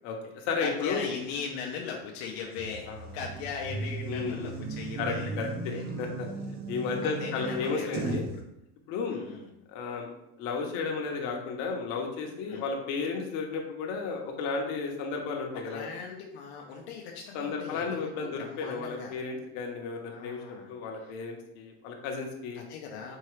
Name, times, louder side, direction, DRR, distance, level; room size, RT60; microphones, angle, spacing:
voice 1, 0.0-1.1 2.9-3.1 4.1-4.6 5.0-6.3 6.7-8.2 8.9-9.2 9.7-10.1 10.4-15.9 17.3-20.4 20.7-22.6, left 4 dB, 60° left, 1 dB, 0.9 m, -33 dB
voice 2, 0.6-5.3 5.7-5.8 7.0-8.1 9.1-9.5 12.5-12.6 15.6-19.1 20.1-20.7 21.1-21.2 22.5-23.2, left 6 dB, 80° left, 0 dB, 0.7 m, -39 dB
sound 1, 2.6-8.4, right 2 dB, 30° right, 0.5 m, -36 dB
4.6 x 2.8 x 3.2 m, 0.83 s
cardioid pair, 150°, 31 cm